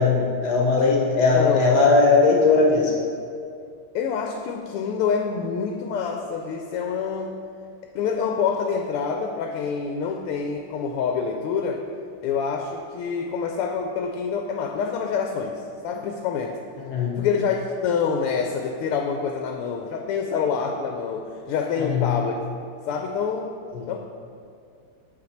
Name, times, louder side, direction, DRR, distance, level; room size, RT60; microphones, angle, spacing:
voice 1, 0.0-2.9 16.9-17.2 21.8-22.1 23.7-23.9, left 4 dB, 55° left, -1 dB, 1.3 m, -19 dB
voice 2, 1.3-1.7 3.9-7.4 7.9-11.8 12.2-16.6 17.2-22.3 22.9-23.5 23.9-24.0, left 6 dB, 85° left, 3 dB, 1.5 m, -26 dB
5.9 x 4.6 x 6.4 m, 2.4 s
omnidirectional pair, 2.4 m